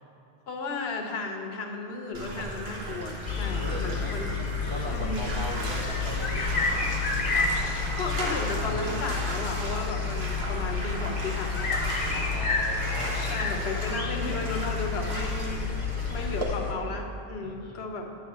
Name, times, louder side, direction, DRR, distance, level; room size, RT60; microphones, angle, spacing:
voice 1, 0.5-4.3 4.9-5.2 8.0-11.7 13.3-15.7 16.1-18.2, left 3 dB, 80° left, 4 dB, 1.0 m, -34 dB
Bathtub (filling or washing), 2.1-16.4, right 1 dB, 75° right, 1.3 m, -35 dB
sound 1, 3.2-16.7, left 5 dB, 45° left, 0.8 m, -30 dB
voice 2, 3.5-4.2 4.6-6.7 12.3-13.7 17.4-17.8, right 1 dB, 35° right, -3 dB, 0.6 m, -39 dB
10.5 x 3.6 x 6.6 m, 2.8 s
omnidirectional pair, 1.1 m